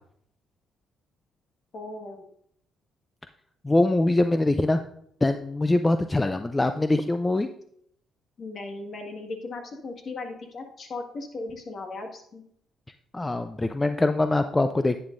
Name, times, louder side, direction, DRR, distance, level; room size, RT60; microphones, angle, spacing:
voice 1, 1.7-2.3 8.4-12.4, left 3 dB, 50° left, 3 dB, 1.7 m, -37 dB
voice 2, 3.6-4.8 5.2-7.5 13.1-15.0, left 2 dB, 15° left, 8 dB, 0.4 m, -23 dB
10.5 x 9.0 x 2.6 m, 0.70 s
cardioid pair, 90°, 0 cm